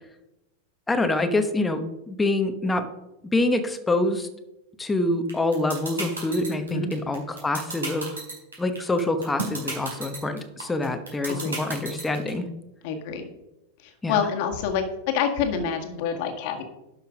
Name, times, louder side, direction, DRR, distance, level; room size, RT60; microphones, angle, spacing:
voice 1, 0.9-2.9 3.3-4.3 4.8-8.1 8.6-12.4 14.0-14.2, left 2 dB, 10° left, 8 dB, 1.1 m, -25 dB
sound 1, 5.3-12.3, right 3 dB, 70° right, 4.0 m, -32 dB
voice 2, 12.8-13.3 14.1-14.8 15.1-16.6, left 7 dB, 45° left, 4 dB, 1.7 m, -26 dB
11.5 x 5.8 x 5.1 m, 0.93 s
figure-of-eight pair, 90°, 0 cm